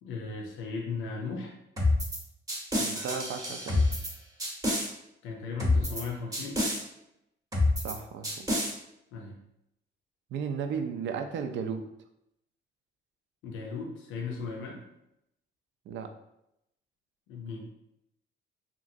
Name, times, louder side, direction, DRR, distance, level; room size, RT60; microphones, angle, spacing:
voice 1, 0.0-1.5 5.2-6.6 9.1-9.4 13.4-14.8 17.3-17.7, left 4 dB, 90° left, 0 dB, 0.5 m, -37 dB
sound 1, 1.8-2.2 2.5-4.1 4.4-4.9 5.6-6.0 6.3-6.8 7.5-7.9 8.2-8.7, left 2 dB, 20° right, 0.7 m, -27 dB
voice 2, 2.8-3.8 7.8-8.5 10.3-11.8 15.9-16.1, right 6 dB, 70° right, 7 dB, 0.4 m, -34 dB
2.9 x 2.4 x 2.6 m, 0.82 s
cardioid pair, 90°, 20 cm